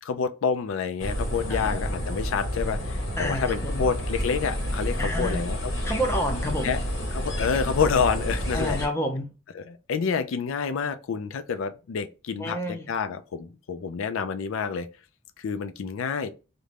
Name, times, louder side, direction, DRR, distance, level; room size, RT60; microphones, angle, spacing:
voice 1, 0.0-5.7 6.6-6.8 7.1-8.8 9.5-14.9 15.4-16.3, left 6 dB, 85° left, 0.4 m, -28 dB
sound 1, 1.0-8.9, equal, 65° left, 0.9 m, -29 dB
voice 2, 1.5-1.8 3.2-3.8 5.0-5.4 5.8-6.7 8.5-9.3 12.4-12.9, equal, 15° left, 0.5 m, -29 dB
2.5 x 2.1 x 3.2 m
head